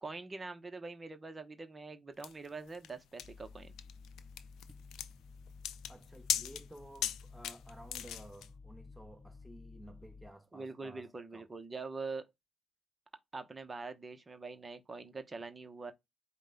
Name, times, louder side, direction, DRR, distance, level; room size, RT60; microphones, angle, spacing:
voice 1, 0.0-3.7 10.5-12.3 13.3-15.9, right 3 dB, 25° right, 0.8 m, -44 dB
sound 1, 2.2-8.5, left 11 dB, 80° left, 0.5 m, -39 dB
sound 2, 3.2-10.3, left 4 dB, 40° left, 0.7 m, -53 dB
voice 2, 5.9-11.4, right 1 dB, ahead, 0.9 m, -54 dB
5.2 x 2.2 x 3.8 m
cardioid pair, 80°, 0 cm